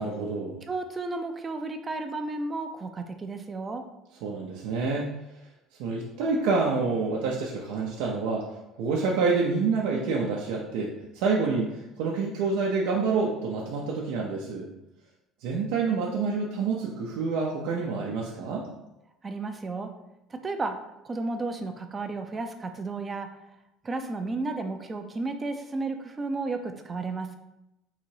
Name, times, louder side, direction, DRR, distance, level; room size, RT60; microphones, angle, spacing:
voice 1, 0.0-0.6 4.2-5.1 5.8-8.5 8.8-14.7 15.4-18.6, right 4 dB, 80° right, -2 dB, 0.7 m, -27 dB
voice 2, 0.7-3.8 19.2-19.9 20.3-20.8 21.0-23.3 23.8-27.3, right 3 dB, 20° right, 6 dB, 0.5 m, -33 dB
3.9 x 2.9 x 4.6 m, 0.91 s
cardioid pair, 145°, 0 cm